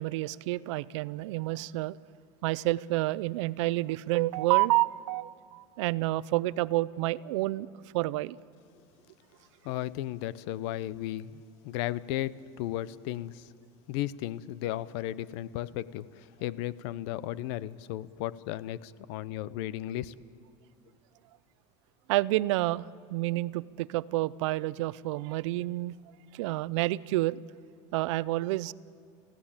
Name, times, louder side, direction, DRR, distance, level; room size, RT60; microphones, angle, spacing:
voice 1, 0.0-2.0 2.4-7.7 7.9-8.4 22.1-26.0 26.3-27.4 27.9-28.7, right 18 dB, 80° right, 19 dB, 0.5 m, -29 dB
voice 2, 9.6-13.5 13.9-20.1, left 14 dB, 65° left, 18 dB, 0.7 m, -35 dB
27.5 x 15.5 x 8.8 m, 2.3 s
supercardioid pair, 155°, 15 cm